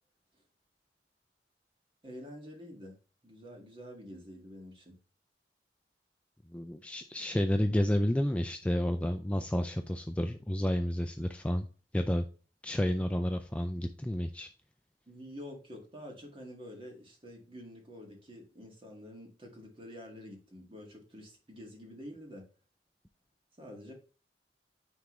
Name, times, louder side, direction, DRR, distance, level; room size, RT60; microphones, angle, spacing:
voice 1, 2.0-3.0 3.2-5.0 15.1-22.4 23.6-23.9, equal, 30° right, 1 dB, 1.8 m, -48 dB
voice 2, 6.5-11.7 11.9-12.3 12.6-14.5, equal, 5° left, 6 dB, 0.3 m, -30 dB
9.6 x 3.6 x 3.1 m, 0.36 s
head